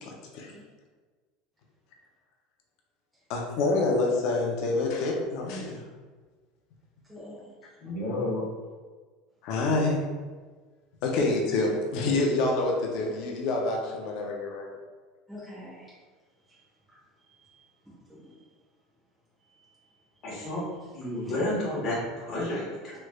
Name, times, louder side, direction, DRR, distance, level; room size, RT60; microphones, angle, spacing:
voice 1, 0.0-0.5 3.3-5.8 9.4-10.0 11.0-14.7, left 2 dB, 60° left, 0 dB, 0.6 m, -27 dB
voice 2, 7.0-7.9 15.3-15.9 16.5-16.6 17.2-18.3 19.4-20.5 20.8-20.9 21.1-21.3 21.8-21.9, left 1 dB, 5° right, -10 dB, 1.2 m, -49 dB
voice 3, 7.8-8.4 20.2-20.6 20.9-22.0 22.2-22.9, left 1 dB, 40° left, -6 dB, 1.3 m, -30 dB
3.1 x 3.1 x 2.3 m, 1.4 s
supercardioid pair, 135°, 0 cm